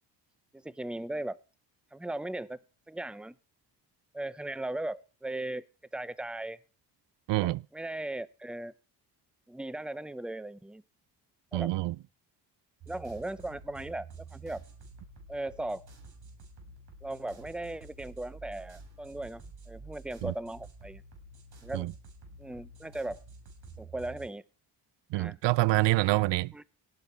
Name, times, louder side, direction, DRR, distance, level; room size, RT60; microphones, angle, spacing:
voice 1, 0.5-1.4 1.9-2.6 2.9-3.4 4.1-5.7 5.9-6.6 7.4-8.7 9.5-10.8 11.5-11.7 12.9-14.6 15.3-15.9 17.0-19.4 19.7-21.0 21.6-21.9 22.4-23.2 23.8-24.4 25.1-25.4 26.5-26.6, right 1 dB, ahead, 0.7 m, -37 dB
voice 2, 7.3-7.6 11.5-11.9 20.2-20.3 21.7-21.9 25.1-26.5, right 19 dB, 90° right, 0.5 m, -26 dB
sound 1, 12.8-24.3, right 3 dB, 65° right, 5.6 m, -50 dB
17.5 x 6.8 x 5.7 m
cardioid pair, 90°, 42 cm